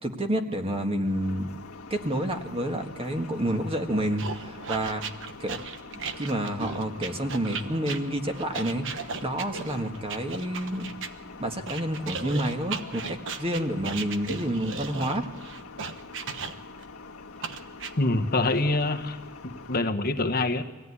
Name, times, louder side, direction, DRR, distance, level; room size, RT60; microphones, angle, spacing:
voice 1, 0.0-1.5 1.9-5.0 5.4-5.6 5.9-10.9 11.4-15.2, right 1 dB, 25° right, 4 dB, 1.7 m, -29 dB
sound 1, 1.0-19.8, left 3 dB, 90° left, 1.8 m, -45 dB
sound 2, 4.2-11.1 11.7-16.8 17.4-17.9, right 5 dB, 60° right, 1.2 m, -36 dB
voice 2, 18.0-19.2 19.4-20.6, left 2 dB, 45° left, 5 dB, 1.2 m, -25 dB
24.5 x 16.5 x 9.8 m, 1.3 s
head